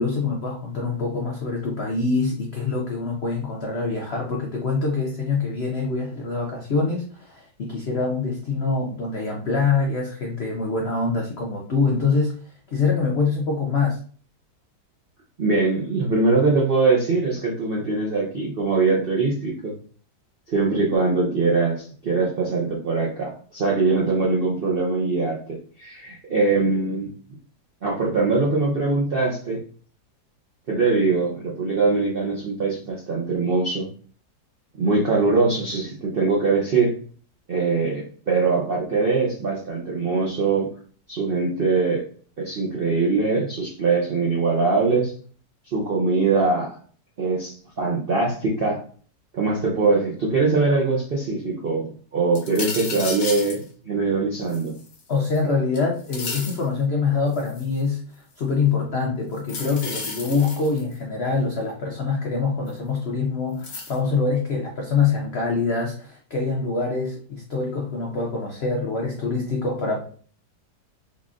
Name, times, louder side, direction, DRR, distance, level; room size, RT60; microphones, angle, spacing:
voice 1, 0.0-12.4 12.7-14.0 55.1-70.0, left 4 dB, 75° left, 0 dB, 0.5 m, -25 dB
voice 2, 15.4-19.8 20.5-27.1 27.8-29.6 30.7-33.9 34.7-36.9 37.5-40.7 41.1-42.0 42.4-45.1 45.7-46.8 47.2-48.8 49.3-54.8, right 3 dB, 65° right, -3 dB, 0.5 m, -22 dB
sound 1, 52.3-53.6 54.5-55.4 55.7-56.6 57.3-57.8 59.4-61.0 62.7-62.8 63.6-64.0, left 3 dB, 50° left, 1.1 m, -33 dB
3.8 x 3.1 x 2.4 m, 0.44 s
omnidirectional pair, 1.9 m